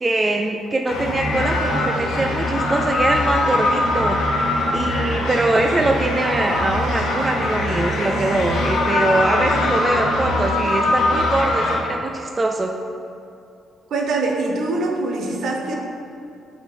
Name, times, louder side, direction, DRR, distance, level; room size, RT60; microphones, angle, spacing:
voice 1, 0.0-4.2 4.7-12.7, right 2 dB, 25° right, 3 dB, 0.3 m, -22 dB
sound 1, 0.9-11.8, left 1 dB, 90° left, 1.0 m, -22 dB
voice 2, 13.9-15.8, right 2 dB, 65° right, 1 dB, 0.8 m, -23 dB
5.1 x 4.5 x 4.3 m, 2.6 s
cardioid pair, 90°, 0 cm